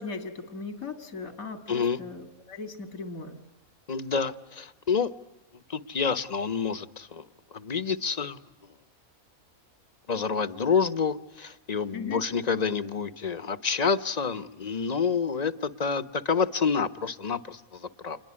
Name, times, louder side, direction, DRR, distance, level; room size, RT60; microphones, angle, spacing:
voice 1, 0.0-3.4 11.9-12.3, left 4 dB, 80° left, 7 dB, 2.7 m, -38 dB
voice 2, 1.7-2.0 3.9-5.1 5.7-7.2 7.5-8.4 10.1-18.2, left 5 dB, 30° left, 13 dB, 1.0 m, -28 dB
28.0 x 21.5 x 9.7 m, 0.95 s
omnidirectional pair, 1.5 m